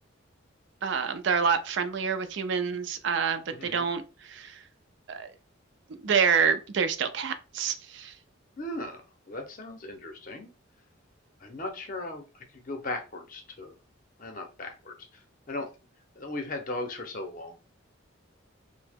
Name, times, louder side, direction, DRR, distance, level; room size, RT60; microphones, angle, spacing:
voice 1, 0.8-4.6 5.1-5.3 6.0-8.1, right 6 dB, 60° right, 0.4 m, -27 dB
voice 2, 3.5-3.9 8.6-9.0 9.3-10.5 11.4-13.7 14.2-15.2 15.5-15.7 16.2-17.6, left 2 dB, 40° left, 0.6 m, -37 dB
2.8 x 2.1 x 3.4 m
head